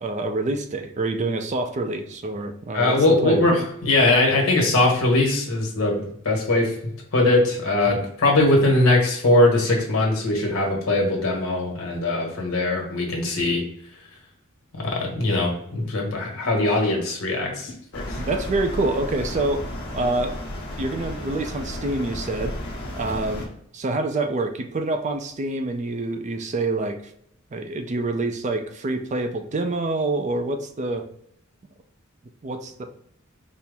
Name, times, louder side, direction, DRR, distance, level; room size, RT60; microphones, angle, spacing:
voice 1, 0.0-3.0 3.2-3.4 18.2-19.7 19.9-20.4 20.8-22.6 23.0-23.5 23.7-27.0 27.5-31.1 32.4-32.8, right 2 dB, 35° right, 6 dB, 0.4 m, -26 dB
voice 2, 2.7-6.7 7.1-13.6 14.7-18.2, left 2 dB, 85° left, 0 dB, 1.3 m, -21 dB
sound 1, 17.9-23.5, left 1 dB, 55° left, 1.1 m, -33 dB
4.3 x 2.0 x 3.5 m, 0.69 s
head